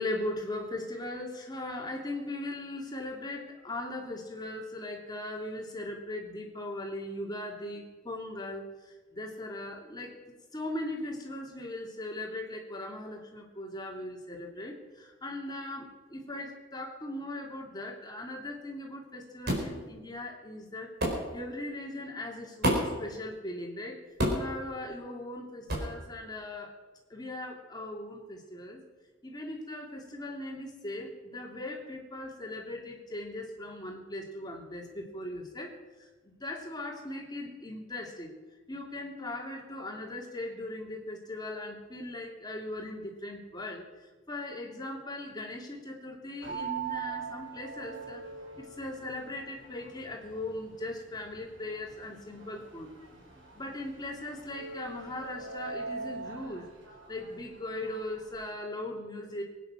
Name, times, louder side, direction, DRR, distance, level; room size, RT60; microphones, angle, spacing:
voice 1, 0.0-8.7 9.1-10.2 10.5-20.9 21.3-24.0 24.3-26.7 27.1-28.8 29.2-35.7 36.4-38.3 38.7-43.8 44.3-48.2 48.6-52.9 53.5-56.7 57.1-59.4, left 1 dB, 20° left, 0 dB, 2.8 m, -39 dB
sound 1, 19.5-19.7 21.0-21.2 22.6-23.0 24.2-24.5 25.7-25.9, equal, 55° right, 4.7 m, -27 dB
sound 2, 46.4-58.3, right 6 dB, 90° right, 4.5 m, -43 dB
22.5 x 9.6 x 6.3 m, 1.2 s
head